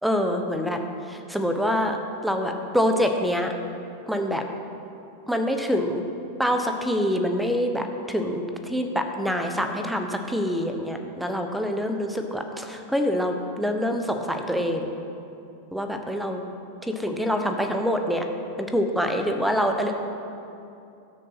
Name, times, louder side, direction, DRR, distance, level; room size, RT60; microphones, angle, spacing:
voice 1, 0.0-0.8 1.1-2.0 2.2-3.5 4.1-4.4 5.3-6.0 6.4-14.9 15.7-16.4 16.8-18.2 18.6-19.9, equal, ahead, 5 dB, 1.1 m, -25 dB
17.5 x 6.5 x 5.9 m, 2.7 s
figure-of-eight pair, 90°, 0 cm